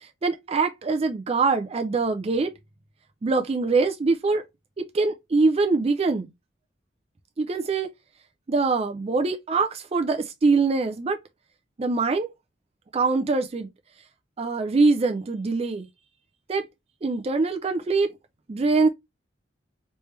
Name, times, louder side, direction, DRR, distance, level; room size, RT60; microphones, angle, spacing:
voice 1, 0.2-2.5 3.2-4.4 4.8-6.3 7.4-7.9 8.5-11.2 11.8-12.3 12.9-13.7 14.4-15.9 16.5-16.7 17.0-18.1 18.5-18.9, right 3 dB, 30° right, 0.4 m, -23 dB
3.2 x 3.1 x 3.1 m
head